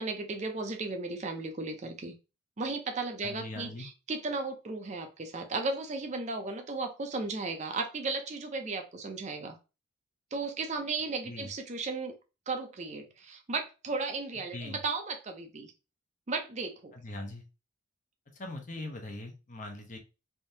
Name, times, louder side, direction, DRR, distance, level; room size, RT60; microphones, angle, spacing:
voice 1, 0.0-2.1 2.6-9.6 10.3-12.1 12.5-15.7 16.3-16.9, right 3 dB, 35° right, 0.5 m, -35 dB
voice 2, 3.2-3.9 11.2-11.5 14.5-14.8 16.9-17.4 18.3-20.0, left 1 dB, 35° left, 0.7 m, -41 dB
3.5 x 2.7 x 2.7 m
head